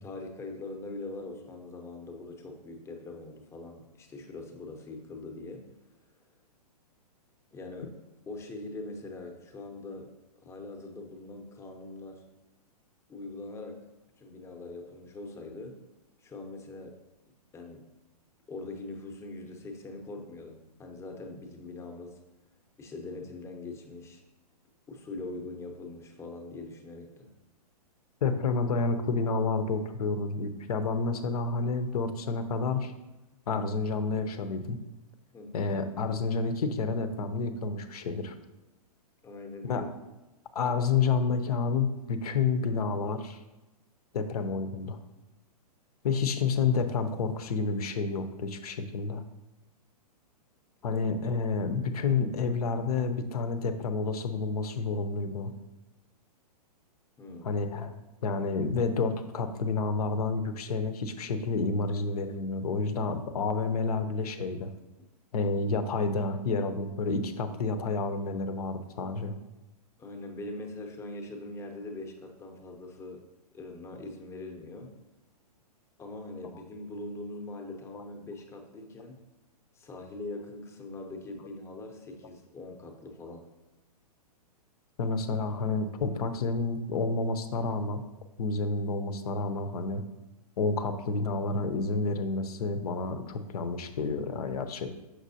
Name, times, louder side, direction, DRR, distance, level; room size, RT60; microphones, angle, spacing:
voice 1, 0.0-5.6 7.5-7.9 8.3-10.1 10.4-12.2 13.1-13.8 14.2-15.8 16.2-17.0 17.5-17.9 18.5-22.2 22.8-24.2 24.9-27.3 35.3-35.7 39.2-39.8 50.8-51.0 57.2-57.6 70.0-73.2 73.5-74.9 76.0-79.2 79.7-83.5, left 2 dB, 15° left, 3 dB, 0.7 m, -42 dB
voice 2, 28.2-32.9 33.5-34.8 35.5-38.3 39.6-39.8 40.5-43.4 44.1-45.0 46.0-49.2 50.8-55.5 57.4-57.9 58.2-64.7 65.3-69.3 85.0-88.0 88.4-90.0 90.6-94.9, left 4 dB, 70° left, 9 dB, 0.7 m, -29 dB
6.3 x 5.9 x 2.7 m, 1.0 s
hypercardioid pair, 135°, 20 cm